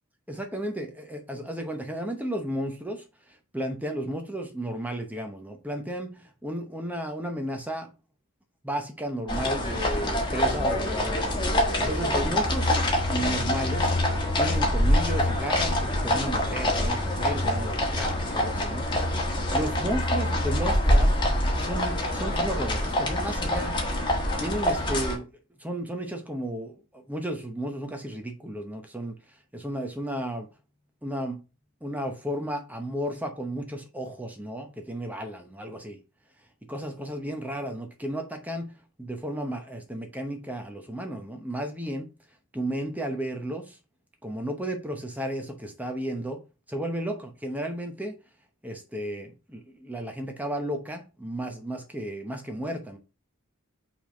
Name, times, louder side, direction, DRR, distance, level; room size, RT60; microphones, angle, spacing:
voice 1, 0.3-7.9 8.6-12.8 13.0-13.9 14.4-19.2 19.5-21.1 21.6-24.0 24.4-25.3 25.6-30.5 31.0-31.4 31.8-36.0 36.7-38.7 39.0-42.1 42.5-43.8 44.2-46.4 46.7-48.2 48.6-53.0, right 1 dB, 5° right, 0.9 m, -33 dB
sound 1, 9.3-25.2, left 1 dB, 20° left, 1.4 m, -25 dB
5.9 x 3.5 x 5.0 m
head